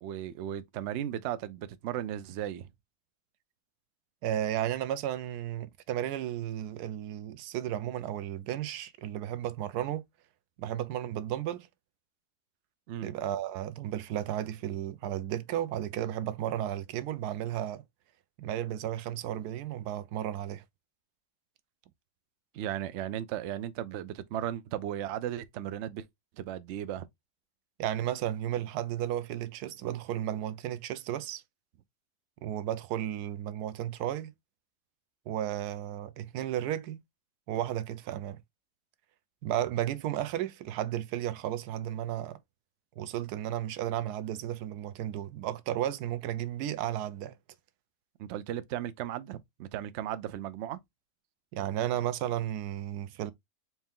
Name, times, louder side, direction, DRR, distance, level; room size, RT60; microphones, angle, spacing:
voice 1, 0.0-2.7 12.9-13.1 22.5-26.1 26.4-27.1 48.2-50.8, right 11 dB, 70° right, 0.7 m, -36 dB
voice 2, 4.2-10.0 10.6-11.7 13.0-17.8 18.4-20.6 27.8-31.4 32.4-34.3 35.3-37.0 37.5-38.4 39.4-42.4 43.0-47.3 51.5-53.3, right 11 dB, 90° right, 1.1 m, -33 dB
4.4 x 2.7 x 3.6 m
omnidirectional pair, 1.6 m